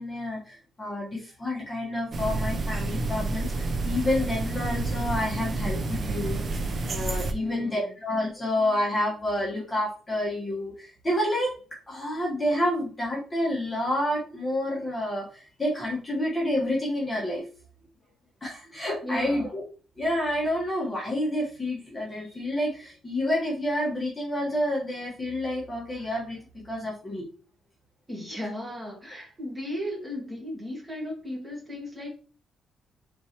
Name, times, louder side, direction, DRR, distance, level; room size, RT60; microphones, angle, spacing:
voice 1, 0.0-6.6 6.9-11.6 11.9-17.4 18.4-19.6 20.0-26.4 26.6-27.2, left 1 dB, 15° left, -5 dB, 1.2 m, -29 dB
sound 1, 2.1-7.3, right 2 dB, 35° right, 0.5 m, -29 dB
voice 2, 7.3-7.9 19.0-19.5 28.1-32.1, left 1 dB, 15° right, -2 dB, 1.7 m, -36 dB
4.3 x 3.1 x 2.9 m, 0.38 s
cardioid pair, 145°, 0 cm